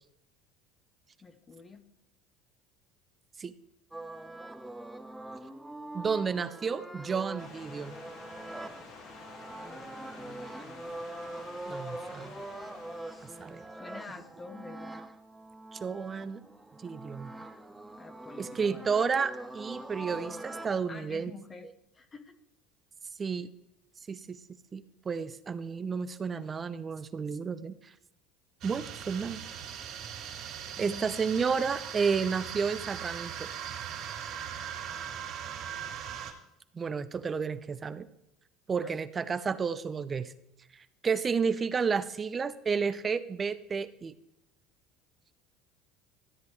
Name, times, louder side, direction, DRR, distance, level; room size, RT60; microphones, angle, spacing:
voice 1, 1.2-1.9 9.5-11.0 13.6-15.0 18.0-18.9 20.9-22.4 30.8-31.1 38.8-39.0, left 4 dB, 25° left, 8 dB, 0.9 m, -48 dB
sound 1, 3.9-20.8, right 2 dB, 5° right, 0.9 m, -43 dB
voice 2, 5.9-8.0 11.7-12.4 13.4-13.6 15.7-16.4 16.8-17.3 18.4-21.3 23.2-23.5 24.1-24.4 24.7-27.9 28.6-29.4 30.8-33.5 36.7-38.1 38.7-40.3 40.7-44.1, right 5 dB, 30° right, 12 dB, 0.6 m, -31 dB
sound 2, 7.4-13.8, left 4 dB, 60° left, 2.0 m, -50 dB
sound 3, 28.6-36.3, right 9 dB, 60° right, 2.9 m, -39 dB
13.5 x 8.2 x 3.2 m, 0.82 s
hypercardioid pair, 85°, 0 cm